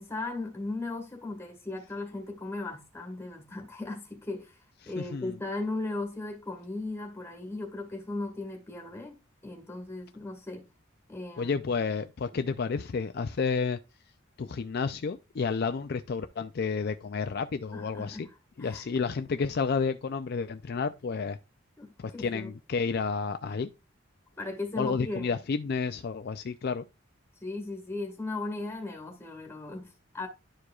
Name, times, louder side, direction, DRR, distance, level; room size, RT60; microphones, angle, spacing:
voice 1, 0.0-4.5 4.8-9.2 9.4-10.6 11.1-11.7 12.3-12.4 17.7-18.3 18.6-18.9 21.8-22.5 24.4-25.4 27.4-30.3, left 2 dB, 15° left, 1.5 m, -37 dB
voice 2, 4.8-5.3 11.4-13.8 14.4-18.3 18.6-21.4 22.0-23.7 24.8-26.9, left 5 dB, 50° left, 0.4 m, -31 dB
11.5 x 4.7 x 2.4 m
head